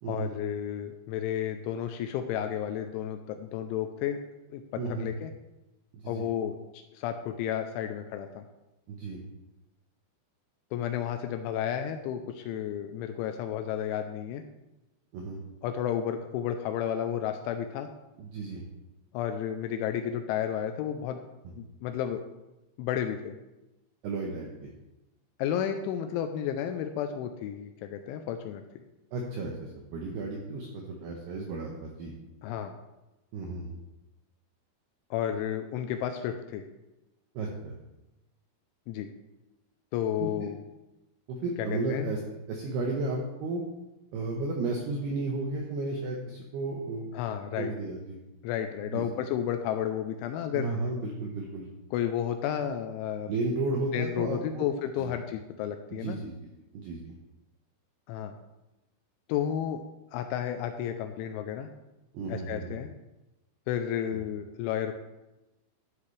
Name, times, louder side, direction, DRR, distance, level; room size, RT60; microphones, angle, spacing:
voice 1, 0.1-4.2 4.5-5.3 6.0-8.4 10.7-14.4 15.6-17.9 19.1-21.2 21.6-22.2 22.8-23.4 25.4-28.6 32.4-32.8 35.1-36.6 38.9-39.1 39.9-40.6 41.6-42.1 47.1-47.7 48.4-50.7 51.9-53.3 53.9-56.2 58.1-58.3 59.3-59.8 60.1-61.7 62.3-62.9 63.7-64.9, left 9 dB, 90° left, 6 dB, 2.7 m, -32 dB
voice 2, 4.8-5.1 5.9-6.3 8.9-9.2 15.1-15.4 18.2-18.6 24.0-24.7 29.1-32.1 33.3-33.7 37.3-37.7 40.2-40.5 41.3-42.2 42.5-43.6 44.1-47.1 47.6-48.2 48.9-49.0 50.5-51.7 53.3-54.7 55.0-55.1 55.9-56.3 56.7-57.1 62.1-62.8, right 3 dB, 80° right, 0 dB, 2.4 m, -33 dB
12.0 x 8.4 x 3.2 m, 0.98 s
omnidirectional pair, 6.0 m